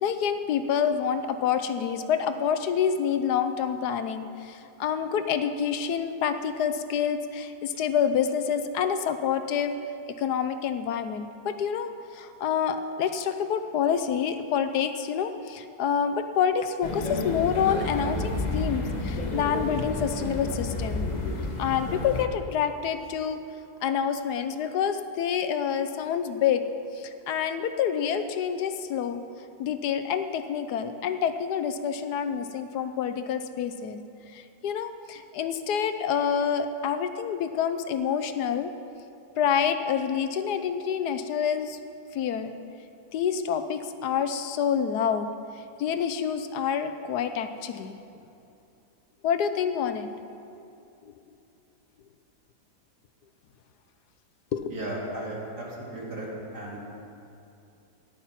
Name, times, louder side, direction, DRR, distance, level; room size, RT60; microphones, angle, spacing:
voice 1, 0.0-9.7 10.2-21.1 21.6-23.4 23.8-26.6 26.9-29.2 29.6-34.0 34.3-38.7 39.4-41.8 42.1-42.5 43.1-45.3 45.8-48.0 49.2-50.1 54.5-54.8, left 7 dB, 75° left, 9 dB, 1.3 m, -27 dB
sound 1, 16.8-22.2, left 2 dB, 30° left, 1.2 m, -30 dB
voice 2, 54.7-56.3 56.5-56.8, right 1 dB, 70° right, -4 dB, 3.4 m, -35 dB
14.0 x 10.5 x 5.8 m, 2.7 s
omnidirectional pair, 1.7 m